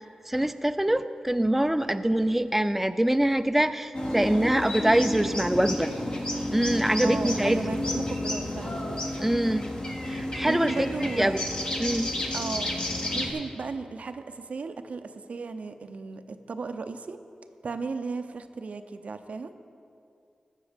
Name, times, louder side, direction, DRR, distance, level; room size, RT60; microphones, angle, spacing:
voice 1, 0.3-5.9 6.5-7.6 9.2-9.6 10.1-11.4 11.8-12.1, right 1 dB, 10° right, 9 dB, 0.4 m, -24 dB
sound 1, 3.9-13.3, left 1 dB, 40° left, 1.6 m, -31 dB
voice 2, 7.0-8.8 9.2-9.3 10.4-11.3 12.3-12.8 13.1-17.2 17.6-19.5, right 4 dB, 70° right, 9 dB, 0.6 m, -35 dB
15.0 x 6.2 x 5.1 m, 2.4 s
cardioid pair, 45°, 2 cm